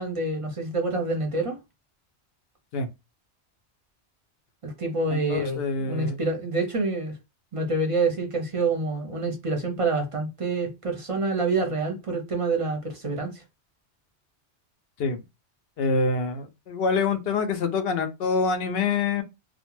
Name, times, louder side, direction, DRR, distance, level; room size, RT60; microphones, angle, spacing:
voice 1, 0.0-1.6 4.6-7.1 7.5-13.4, right 3 dB, 35° right, 0.6 m, -27 dB
voice 2, 5.1-6.2 15.0-15.2 15.8-19.2, left 4 dB, 65° left, 0.7 m, -26 dB
2.2 x 2.1 x 3.0 m
omnidirectional pair, 1.1 m